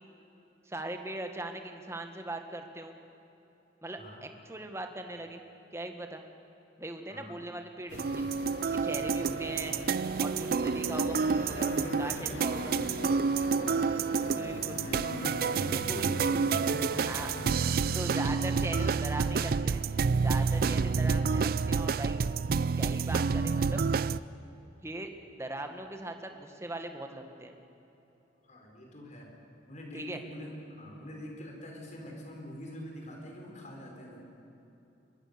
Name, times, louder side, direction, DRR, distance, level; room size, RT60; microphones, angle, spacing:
voice 1, 0.6-2.9 3.8-5.4 5.7-6.2 6.8-8.3 8.7-9.8 10.2-12.8 14.2-14.8 15.9-16.0 17.1-17.3 17.9-19.8 20.2-22.2 22.8-23.9 24.8-27.6 29.9-30.2, right 1 dB, 15° right, 5 dB, 1.6 m, -40 dB
sound 1, 7.9-18.0, left 3 dB, 75° left, 0.9 m, -42 dB
sound 2, 7.9-24.2, right 5 dB, 55° right, 0.4 m, -29 dB
voice 2, 11.1-14.1 14.8-18.5 20.3-20.6 28.4-29.3 29.7-34.2, equal, 40° left, 1 dB, 4.7 m, -44 dB
23.5 x 21.5 x 6.8 m, 3.0 s
head